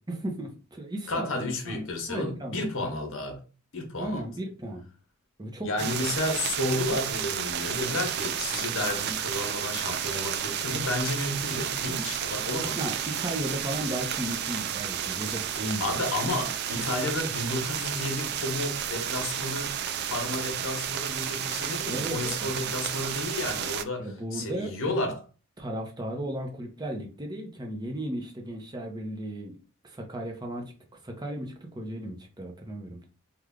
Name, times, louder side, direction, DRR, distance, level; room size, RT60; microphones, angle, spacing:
voice 1, 0.1-2.7 4.0-4.8 5.4-5.7 6.0-6.1 12.7-16.0 16.8-16.9 21.9-22.5 24.0-24.8 25.6-29.6 29.8-30.7 31.0-33.0, right 1 dB, 20° right, 0.7 m, -35 dB
voice 2, 1.1-3.4 3.7-4.2 5.6-12.8 15.8-19.8 20.0-25.2, left 2 dB, 60° left, 0.9 m, -32 dB
sound 1, 5.8-23.8, right 9 dB, 50° right, 0.3 m, -32 dB
3.2 x 2.3 x 3.6 m
head